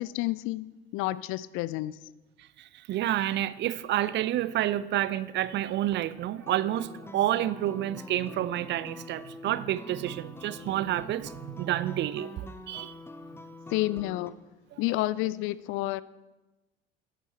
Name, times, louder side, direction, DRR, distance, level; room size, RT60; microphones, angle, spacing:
voice 1, 0.0-2.0 13.7-14.3 14.8-16.0, left 17 dB, 45° left, 19 dB, 0.4 m, -30 dB
voice 2, 2.6-12.9, right 13 dB, 35° right, 16 dB, 0.5 m, -29 dB
sound 1, 6.4-14.3, left 2 dB, 10° left, 0.8 m, -45 dB
11.5 x 9.4 x 4.4 m, 1.1 s
figure-of-eight pair, 65°, 31 cm